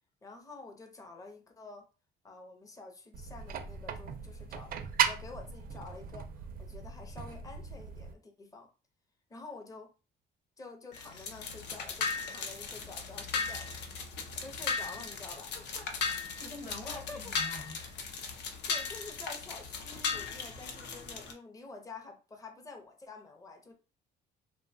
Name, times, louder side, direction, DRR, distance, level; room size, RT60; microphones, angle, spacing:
voice 1, 0.2-1.8 2.2-4.7 5.0-8.7 9.3-9.9 10.6-13.7 14.4-15.5 16.9-17.2 18.7-23.7, left 3 dB, 20° left, 0.6 m, -48 dB
sound 1, 3.1-8.1, right 7 dB, 50° right, 0.4 m, -36 dB
sound 2, 10.9-21.3, left 5 dB, 65° left, 0.6 m, -37 dB
voice 2, 15.5-15.9 16.2-17.8, left 2 dB, 35° left, 1.0 m, -46 dB
2.8 x 2.1 x 2.6 m
cardioid pair, 105°, 19 cm